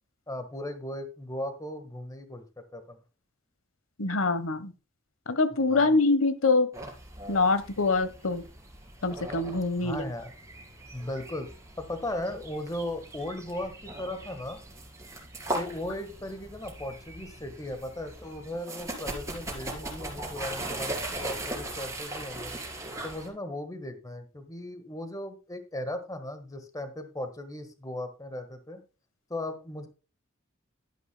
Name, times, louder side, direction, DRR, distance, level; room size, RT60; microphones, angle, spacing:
voice 1, 0.3-2.4 2.7-3.0 5.7-5.9 9.8-10.3 10.9-11.5 11.8-14.6 15.5-22.6 23.0-28.8 29.3-29.9, left 1 dB, 15° left, 9 dB, 1.4 m, -37 dB
voice 2, 4.0-4.7 5.3-6.7 7.3-8.4 9.0-10.0, left 3 dB, 75° left, 13 dB, 1.1 m, -24 dB
sound 1, 6.7-23.3, right 1 dB, 15° right, 3.1 m, -39 dB
11.5 x 10.5 x 2.2 m, 0.31 s
head